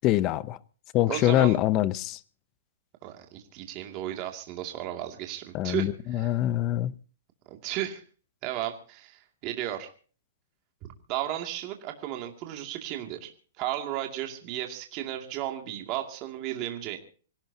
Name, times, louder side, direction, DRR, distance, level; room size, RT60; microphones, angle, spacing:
voice 1, 0.0-0.6 0.9-2.2 5.5-6.9, left 14 dB, 25° left, 0.6 m, -24 dB
voice 2, 1.1-1.6 3.0-6.4 7.5-8.0 8.4-9.9 11.1-13.3 13.6-17.0, right 12 dB, 25° right, 2.4 m, -34 dB
26.0 x 16.5 x 2.8 m
hypercardioid pair, 165°, 0 cm